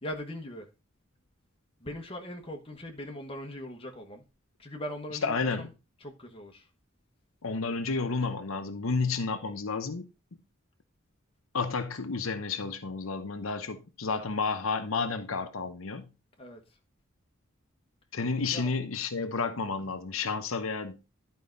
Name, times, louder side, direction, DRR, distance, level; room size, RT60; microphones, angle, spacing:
voice 1, 0.0-0.7 1.8-4.2 4.6-5.7 6.0-6.7 16.4-16.6 18.5-18.7, left 1 dB, 25° left, 1.3 m, -40 dB
voice 2, 5.2-5.7 7.4-10.1 11.5-16.1 18.1-21.0, left 4 dB, 85° left, 0.9 m, -31 dB
11.5 x 4.7 x 3.9 m
head